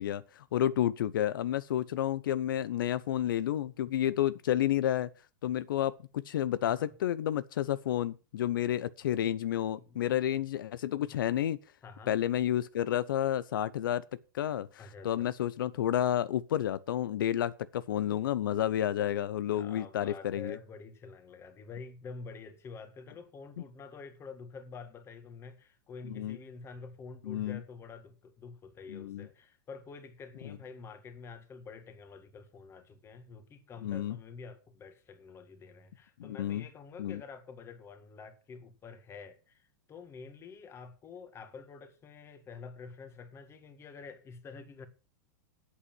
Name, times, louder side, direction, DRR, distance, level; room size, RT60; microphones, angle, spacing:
voice 1, 0.0-5.1 5.4-11.6 12.1-14.0 14.3-20.6 26.1-26.4 27.3-27.6 28.9-29.3 30.4-30.5 33.8-34.2 36.2-36.6 37.0-37.2, left 11 dB, 80° left, 0.7 m, -30 dB
voice 2, 9.7-10.2 11.0-11.1 11.8-12.1 14.8-15.3 19.5-44.9, left 5 dB, 25° left, 2.0 m, -48 dB
8.5 x 8.4 x 7.4 m
supercardioid pair, 135°, 11 cm